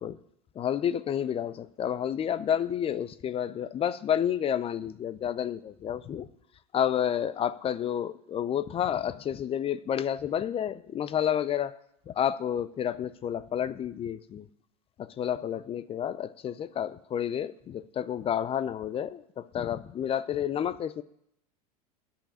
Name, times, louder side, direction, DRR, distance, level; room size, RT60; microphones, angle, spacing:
voice 1, 0.6-6.3 6.7-11.7 12.1-14.5 15.0-21.0, left 9 dB, 30° left, 15 dB, 0.5 m, -30 dB
10.0 x 5.7 x 8.6 m, 0.74 s
hypercardioid pair, 85°, 20 cm